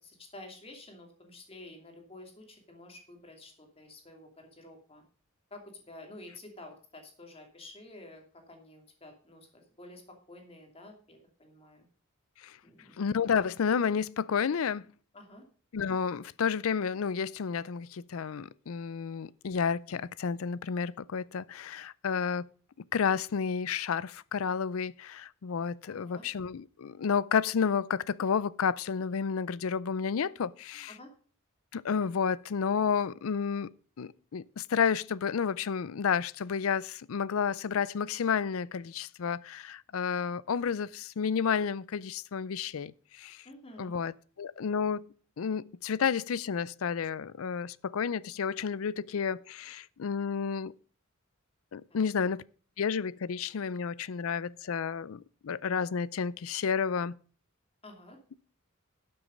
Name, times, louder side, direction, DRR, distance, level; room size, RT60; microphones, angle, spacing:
voice 1, 0.0-5.0 5.5-11.9 12.6-13.0 15.1-15.4 25.8-26.2 30.9-31.1 43.4-43.9 51.9-52.1 57.8-58.2, left 2 dB, 25° left, 2.6 m, -50 dB
voice 2, 13.0-14.9 15.7-22.5 22.9-30.9 31.7-33.7 34.0-43.4 43.8-44.1 44.4-45.1 45.4-50.7 51.7-52.4 52.8-57.2, left 6 dB, 70° left, 0.4 m, -31 dB
12.0 x 7.0 x 5.2 m
head